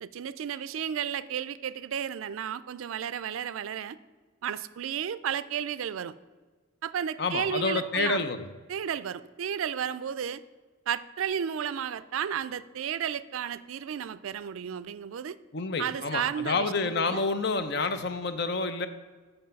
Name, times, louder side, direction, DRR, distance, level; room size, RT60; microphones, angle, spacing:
voice 1, 0.0-4.0 4.4-6.1 6.8-8.2 8.7-10.4 10.9-15.4 15.8-17.2, right 8 dB, 85° right, 16 dB, 0.4 m, -33 dB
voice 2, 7.2-8.5 15.5-18.9, left 3 dB, 55° left, 10 dB, 0.6 m, -29 dB
7.9 x 5.6 x 5.2 m, 1.4 s
head